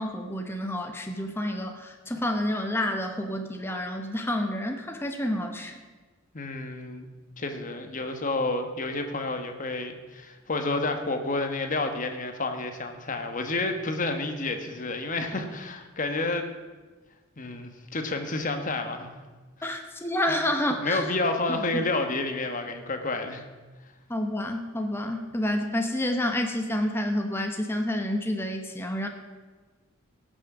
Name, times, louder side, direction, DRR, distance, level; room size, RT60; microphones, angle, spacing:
voice 1, 0.0-5.7 19.6-21.0 21.5-21.6 24.1-29.1, left 1 dB, 10° left, 4 dB, 0.8 m, -29 dB
voice 2, 6.3-7.0 7.4-16.5 17.4-19.1 20.8-23.4, left 2 dB, 40° left, 6 dB, 1.2 m, -30 dB
17.5 x 6.3 x 6.0 m, 1.3 s
head